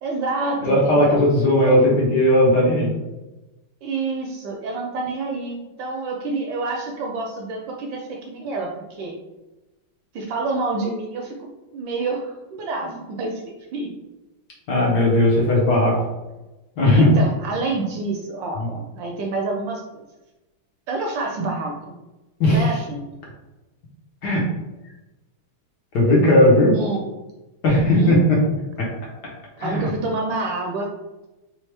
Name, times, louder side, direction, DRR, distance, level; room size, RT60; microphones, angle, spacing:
voice 1, 0.0-1.2 1.6-1.9 3.8-9.1 10.1-11.4 11.7-13.9 16.9-20.0 20.9-21.9 22.5-23.1 26.7-27.1 27.8-28.2 29.6-30.9, right 3 dB, 75° right, 0 dB, 1.1 m, -28 dB
voice 2, 0.6-2.9 14.7-16.0 16.8-17.1 18.6-18.7 22.4-22.6 24.2-24.4 25.9-26.7 27.6-28.4 28.8-28.9 29.6-29.9, left 1 dB, 60° left, -3 dB, 1.2 m, -17 dB
3.5 x 3.2 x 3.2 m, 1.0 s
omnidirectional pair, 2.3 m